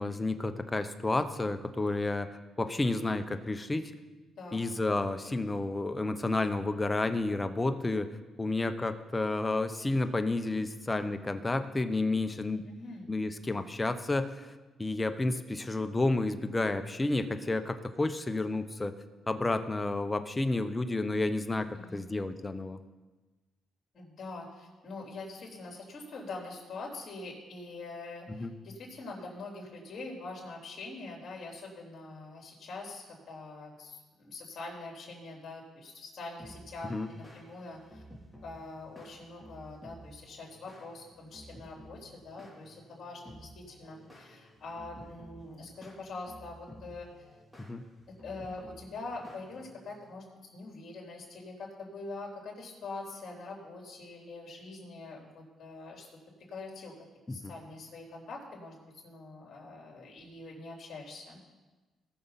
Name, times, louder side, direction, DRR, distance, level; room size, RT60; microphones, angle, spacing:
voice 1, 0.0-2.3 2.6-3.9 4.5-8.1 8.4-12.6 13.1-14.5 14.8-18.9 19.3-21.7 21.9-22.8 28.3-28.5 36.9-37.1 47.7-47.8 57.3-57.5, left 2 dB, 20° left, 9 dB, 0.8 m, -31 dB
voice 2, 12.7-13.1 21.7-22.1 23.9-38.0 38.4-47.1 48.2-50.3 50.5-56.1 56.5-56.9 57.3-58.7 59.0-61.4, left 3 dB, 50° left, -2 dB, 3.8 m, -44 dB
sound 1, 36.4-50.1, equal, ahead, 3.2 m, -53 dB
19.0 x 6.7 x 4.1 m, 1.2 s
cardioid pair, 90°, 0 cm